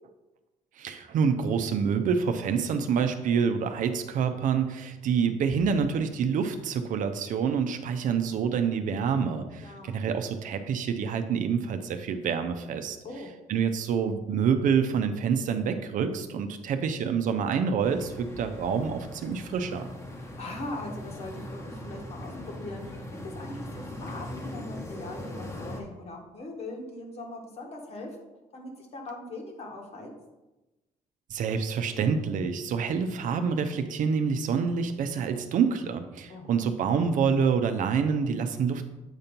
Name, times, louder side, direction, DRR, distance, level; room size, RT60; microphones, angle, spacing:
voice 1, 0.8-13.0 13.5-19.9 31.3-38.9, right 6 dB, 65° right, 8 dB, 0.6 m, -27 dB
voice 2, 9.6-10.0 13.0-13.3 20.1-28.1 28.5-30.1 36.3-36.7, left 2 dB, 45° left, 1 dB, 1.4 m, -41 dB
sound 1, 17.8-25.8, left 1 dB, 20° left, 1.0 m, -40 dB
8.0 x 2.9 x 5.2 m, 1.0 s
cardioid pair, 115°, 14 cm